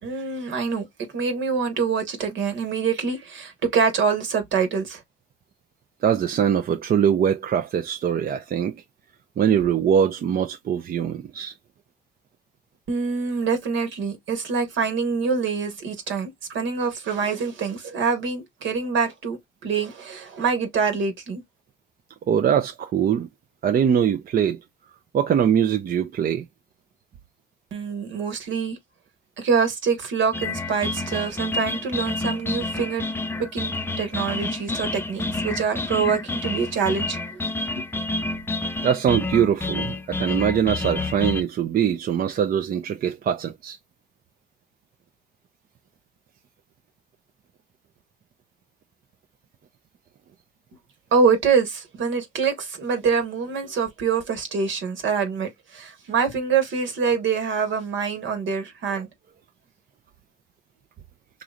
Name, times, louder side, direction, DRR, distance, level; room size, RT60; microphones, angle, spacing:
voice 1, 0.0-5.0 12.9-21.4 27.7-28.8 29.4-33.0 33.4-37.4 37.8-37.9 51.1-59.1, right 5 dB, 75° right, 1.5 m, -25 dB
voice 2, 6.0-8.7 9.4-11.5 22.3-23.3 23.6-24.6 25.1-26.4 38.8-43.8, right 8 dB, 50° right, 0.5 m, -22 dB
sound 1, 30.3-41.4, left 2 dB, 10° left, 0.5 m, -29 dB
3.9 x 3.1 x 2.4 m
cardioid pair, 90°, 20 cm